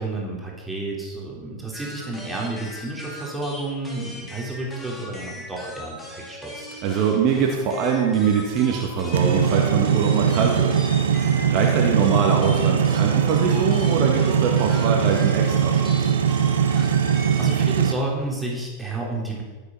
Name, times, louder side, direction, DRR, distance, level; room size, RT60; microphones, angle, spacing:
voice 1, 0.0-6.7 16.9-19.4, right 2 dB, 5° right, -3 dB, 3.7 m, -31 dB
sound 1, 1.7-17.6, equal, 15° left, 3.5 m, -39 dB
voice 2, 6.8-10.7 11.5-16.1, right 6 dB, 40° right, 1 dB, 2.0 m, -23 dB
sound 2, 9.1-17.9, right 8 dB, 65° right, 0.9 m, -20 dB
15.0 x 8.2 x 5.7 m, 1.3 s
figure-of-eight pair, 90°, 0 cm